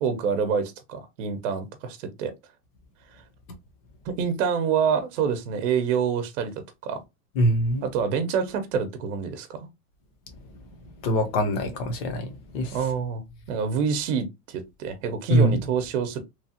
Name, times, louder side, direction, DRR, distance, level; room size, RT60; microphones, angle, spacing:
voice 1, 0.0-2.3 3.1-3.2 4.0-6.5 6.8-7.0 7.8-9.7 12.7-16.2, right 6 dB, 50° right, 0.8 m, -27 dB
voice 2, 7.4-7.9 11.0-12.8 15.3-15.6, equal, 40° left, 0.9 m, -23 dB
3.1 x 2.3 x 2.8 m
supercardioid pair, 150°, 46 cm